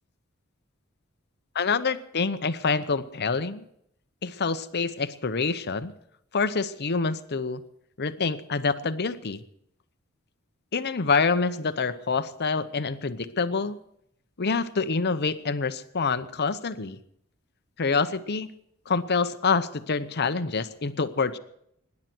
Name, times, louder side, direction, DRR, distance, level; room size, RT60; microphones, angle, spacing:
voice 1, 1.5-3.7 4.2-5.9 6.3-7.6 8.0-9.4 10.7-13.8 14.4-17.0 17.8-18.5 18.9-21.4, left 4 dB, 50° left, 13 dB, 0.8 m, -26 dB
25.0 x 11.0 x 4.5 m, 0.72 s
head